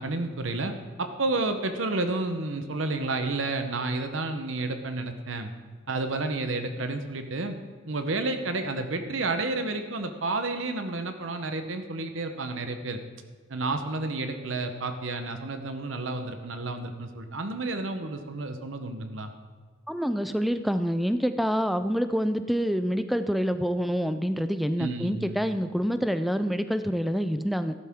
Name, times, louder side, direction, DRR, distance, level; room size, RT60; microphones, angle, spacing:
voice 1, 0.0-5.5 5.9-7.6 7.9-13.0 13.5-19.3 24.8-25.4, right 2 dB, 80° right, 7 dB, 1.0 m, -31 dB
voice 2, 19.9-27.7, equal, ahead, 10 dB, 0.4 m, -27 dB
14.0 x 12.0 x 3.7 m, 1.5 s
head